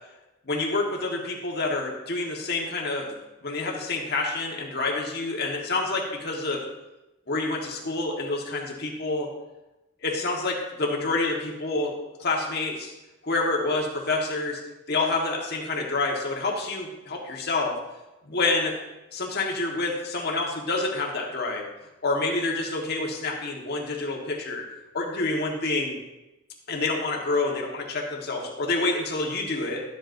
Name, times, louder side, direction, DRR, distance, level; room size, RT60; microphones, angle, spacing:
voice 1, 0.4-3.2 3.4-6.6 7.3-9.3 10.0-11.9 12.2-12.9 13.2-14.6 14.9-17.8 18.2-18.8 19.1-21.6 22.0-24.6 24.9-26.0 26.7-29.8, left 3 dB, 50° left, 0 dB, 1.5 m, -28 dB
12.0 x 7.7 x 2.7 m, 1.0 s
head